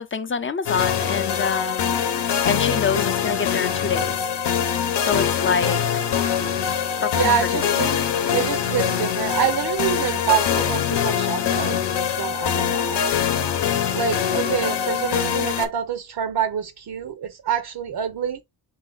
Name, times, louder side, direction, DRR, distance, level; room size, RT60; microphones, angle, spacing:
voice 1, 0.0-2.0 2.4-4.2 4.9-5.8 7.0-7.8, left 6 dB, 30° left, 0.5 m, -26 dB
sound 1, 0.7-15.7, left 8 dB, 75° left, 0.8 m, -23 dB
voice 2, 7.1-8.0 8.3-11.8 12.2-13.0 13.9-18.4, right 8 dB, 65° right, 0.7 m, -26 dB
3.8 x 2.7 x 3.8 m
cardioid pair, 90°, 42 cm